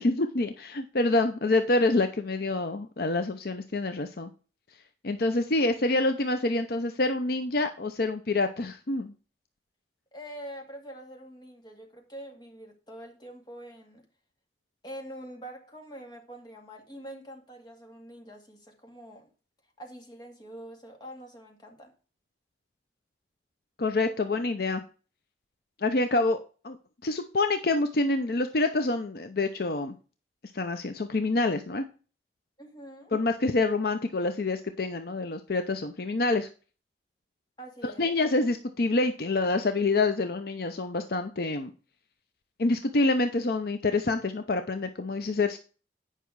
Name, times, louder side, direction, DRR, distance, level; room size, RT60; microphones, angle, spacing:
voice 1, 0.0-4.3 5.0-9.1 23.8-24.8 25.8-26.4 26.6-26.8 27.0-30.0 30.5-31.9 33.1-36.5 37.8-41.7 42.6-45.6, left 2 dB, 60° left, 0.6 m, -27 dB
voice 2, 10.1-14.1 14.8-19.3 19.8-21.9 32.6-33.1 37.6-38.2, right 1 dB, 25° left, 2.1 m, -45 dB
9.2 x 5.6 x 4.7 m
head